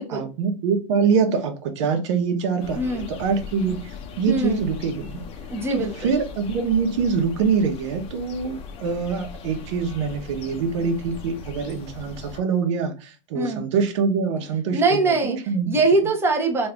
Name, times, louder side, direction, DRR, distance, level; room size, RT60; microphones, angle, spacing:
voice 1, 0.1-5.2 5.7-15.7, right 5 dB, 65° right, 1.1 m, -24 dB
sound 1, 2.6-12.4, left 5 dB, 35° left, 0.8 m, -39 dB
voice 2, 2.8-3.1 4.3-4.6 5.5-6.1 13.3-13.6 14.7-16.7, right 2 dB, 15° right, 0.9 m, -22 dB
3.3 x 2.6 x 3.4 m
supercardioid pair, 135°, 16 cm